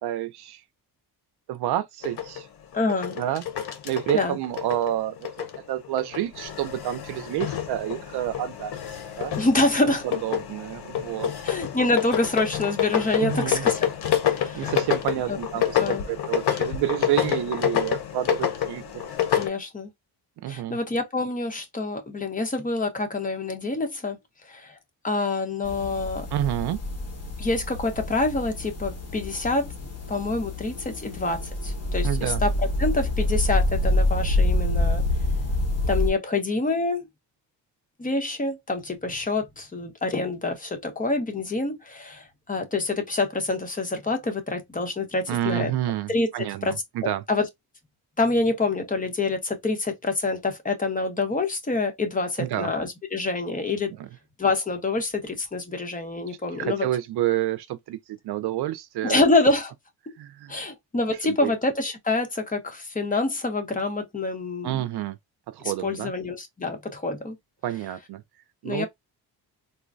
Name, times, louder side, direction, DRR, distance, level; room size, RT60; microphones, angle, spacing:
voice 1, 0.0-0.6 1.5-2.5 3.2-3.4 3.8-8.7 9.2-9.3 9.8-11.3 13.2-13.7 14.5-19.0 20.4-20.8 26.3-26.8 32.0-32.4 45.3-47.2 52.4-52.7 54.0-54.1 56.6-59.2 60.2-60.5 61.2-61.5 64.6-65.2 65.5-66.1 67.6-68.2 68.6-68.9, right 13 dB, 70° right, 0.5 m, -29 dB
sound 1, 2.0-5.6 5.8-19.5, left 10 dB, 65° left, 0.9 m, -28 dB
voice 2, 2.7-3.2 4.1-4.4 9.4-10.1 11.4-13.8 14.2-14.7 15.3-15.4 15.8-16.0 19.3-19.9 20.5-24.2 24.5-24.7 25.0-26.3 27.4-32.5 32.8-35.0 35.9-37.1 38.0-45.7 46.1-46.3 46.6-46.7 47.3-47.5 48.2-53.9 54.4-56.9 59.0-59.7 60.1-60.2 60.5-64.8 65.8-67.4 68.6-68.9, left 2 dB, 20° left, 0.9 m, -26 dB
sound 2, 25.6-36.1, left 1 dB, 35° left, 1.2 m, -26 dB
3.8 x 2.1 x 2.5 m
cardioid pair, 105°, 41 cm